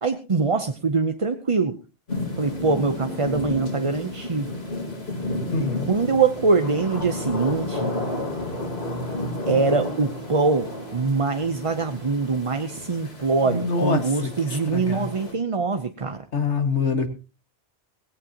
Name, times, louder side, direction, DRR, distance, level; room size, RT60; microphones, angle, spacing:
voice 1, 0.0-1.8 2.4-4.5 5.6-7.9 9.5-16.2, right 4 dB, 30° right, 7 dB, 0.8 m, -23 dB
sound 1, 2.1-15.3, left 1 dB, 60° left, 3.7 m, -32 dB
voice 2, 5.5-5.9 13.4-14.3 14.7-15.1 16.3-17.1, left 4 dB, 75° left, 7 dB, 2.0 m, -25 dB
18.0 x 16.5 x 2.9 m, 0.32 s
omnidirectional pair, 1.2 m